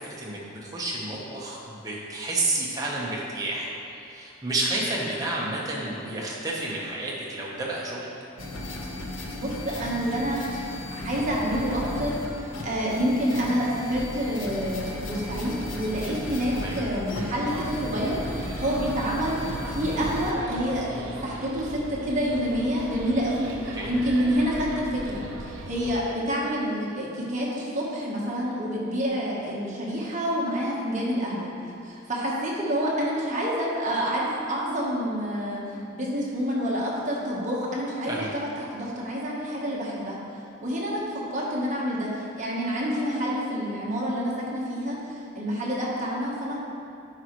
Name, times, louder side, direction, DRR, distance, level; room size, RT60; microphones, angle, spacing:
voice 1, 0.0-8.1 16.6-16.8 23.7-23.9 38.1-38.3, right 2 dB, 15° right, -5 dB, 1.0 m, -30 dB
sound 1, 8.4-20.3, left 1 dB, 65° left, 0.8 m, -35 dB
voice 2, 9.3-31.5 31.8-35.6 35.9-40.2 40.6-42.1 42.4-46.6, equal, 35° right, -5 dB, 1.2 m, -28 dB
sound 2, 17.4-26.0, right 1 dB, 75° right, 0.7 m, -39 dB
9.5 x 4.9 x 3.1 m, 2.6 s
head